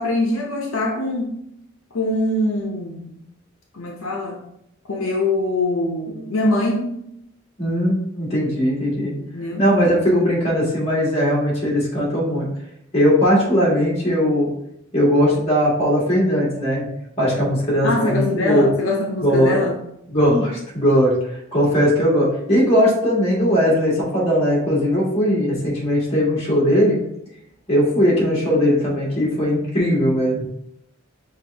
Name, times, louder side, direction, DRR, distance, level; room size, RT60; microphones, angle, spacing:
voice 1, 0.0-1.3 1.9-3.1 3.7-4.4 4.9-6.9 9.1-9.6 17.8-19.8, left 2 dB, 80° left, 0 dB, 0.7 m, -23 dB
voice 2, 7.6-9.1 9.6-12.5 12.9-14.5 14.9-16.9 17.2-18.7 19.2-19.7 20.1-27.0 27.7-30.4, equal, 30° left, -6 dB, 1.8 m, -19 dB
5.7 x 2.5 x 3.3 m, 0.77 s
head